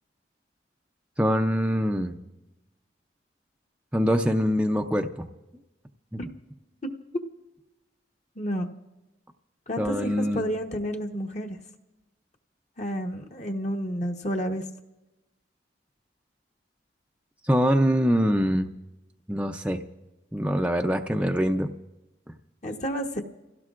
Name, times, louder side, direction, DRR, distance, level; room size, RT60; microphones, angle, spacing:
voice 1, 1.2-2.2 3.9-5.3 6.1-6.2 9.8-10.4 17.4-18.7 19.3-19.8 20.3-21.7, equal, 5° right, 3 dB, 0.5 m, -24 dB
voice 2, 8.4-8.7 9.7-11.6 12.8-14.6 22.6-23.2, equal, 40° left, 3 dB, 1.1 m, -30 dB
30.0 x 17.0 x 2.5 m, 0.99 s
head